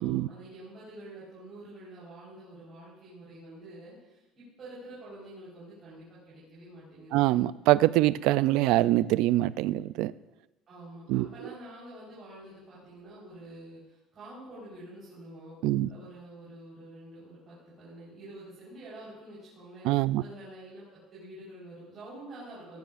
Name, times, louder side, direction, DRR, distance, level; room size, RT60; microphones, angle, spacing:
voice 1, 0.0-7.3 10.7-22.8, right 1 dB, 30° right, -9 dB, 4.1 m, -47 dB
voice 2, 7.1-10.1 11.1-11.3 15.6-15.9 19.8-20.2, right 16 dB, 60° right, 16 dB, 0.3 m, -24 dB
16.5 x 14.0 x 2.5 m, 0.98 s
cardioid pair, 175°, 0 cm